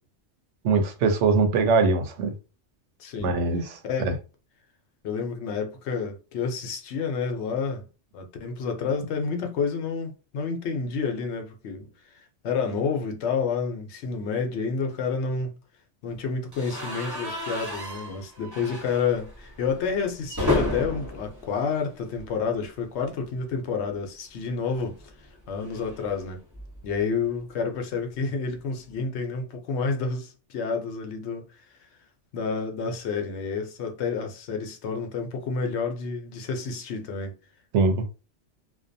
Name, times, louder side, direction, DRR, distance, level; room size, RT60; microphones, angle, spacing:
voice 1, 0.6-2.3 3.2-3.6 4.0-4.1 37.7-38.0, right 4 dB, 85° right, 0.9 m, -22 dB
voice 2, 3.0-3.4 3.8-4.1 5.0-7.8 8.1-15.5 16.0-25.0 25.5-26.4 26.8-31.4 31.7-31.8 32.3-37.3, left 5 dB, 75° left, 0.9 m, -29 dB
sound 1, 16.5-22.6 22.9-23.1 23.3-23.4 24.7-27.0, left 2 dB, 20° right, 0.7 m, -33 dB
2.5 x 2.2 x 2.6 m
omnidirectional pair, 1.2 m